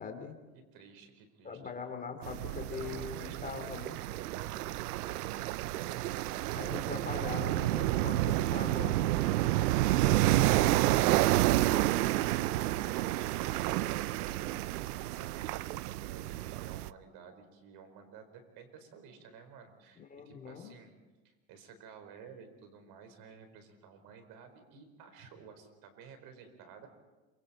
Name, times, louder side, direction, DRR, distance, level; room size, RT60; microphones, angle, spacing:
voice 1, 0.0-0.3 1.4-3.9 6.5-9.4 20.0-20.7, left 5 dB, 20° left, 5 dB, 3.0 m, -42 dB
voice 2, 0.5-1.6 2.7-6.3 10.0-20.9 21.2-26.9, right 6 dB, 50° right, 7 dB, 4.7 m, -54 dB
sound 1, 2.2-16.9, right 15 dB, 85° right, 0.7 m, -30 dB
27.5 x 25.5 x 4.4 m, 1.2 s
supercardioid pair, 115°, 45 cm